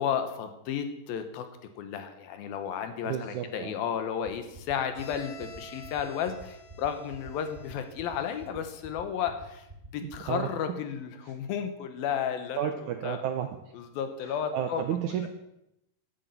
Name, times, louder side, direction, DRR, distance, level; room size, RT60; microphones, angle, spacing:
voice 1, 0.0-1.5 1.8-9.7 9.9-12.7 13.0-13.2 13.8-14.8 15.2-15.3, left 8 dB, 75° left, 8 dB, 2.8 m, -33 dB
voice 2, 3.0-3.8 10.0-10.8 11.2-11.3 12.6-13.5 14.2-15.3, right 10 dB, 80° right, 6 dB, 1.8 m, -32 dB
sound 1, 4.2-10.3, right 2 dB, 45° right, 0.5 m, -46 dB
Bowed string instrument, 4.9-8.7, equal, 50° left, 2.6 m, -50 dB
11.0 x 8.3 x 8.3 m, 0.86 s
omnidirectional pair, 4.4 m